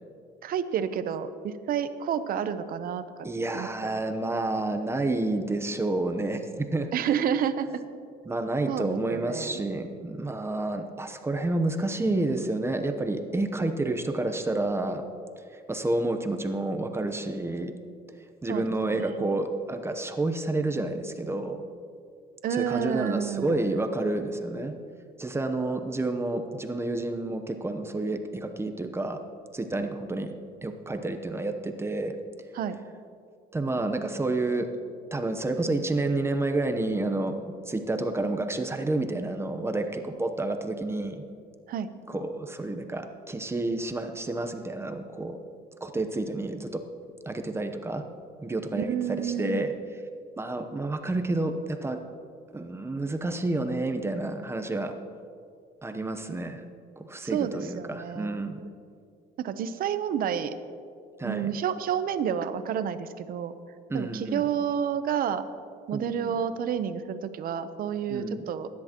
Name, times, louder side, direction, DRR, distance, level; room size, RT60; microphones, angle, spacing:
voice 1, 0.4-3.0 3.5-3.9 6.9-7.8 8.7-9.6 18.5-18.7 19.0-19.3 22.4-23.7 32.5-32.8 41.7-41.9 48.8-49.7 57.2-58.4 59.4-60.5 61.2-63.5 63.9-65.5 65.9-68.7, right 8 dB, 60° right, 11 dB, 0.8 m, -30 dB
voice 2, 3.2-6.9 8.3-15.0 15.5-17.7 18.4-21.6 22.5-24.7 25.2-29.2 29.5-30.3 30.6-32.1 33.5-34.7 35.1-37.4 37.7-41.2 42.1-45.4 45.8-46.8 47.3-48.0 48.4-49.7 50.4-52.0 52.5-54.9 55.8-56.6 57.0-58.6 61.2-61.5 63.9-64.4 65.9-66.4 68.1-68.5, right 2 dB, 15° right, 6 dB, 0.8 m, -29 dB
20.0 x 10.5 x 3.0 m, 2.3 s
cardioid pair, 110°, 17 cm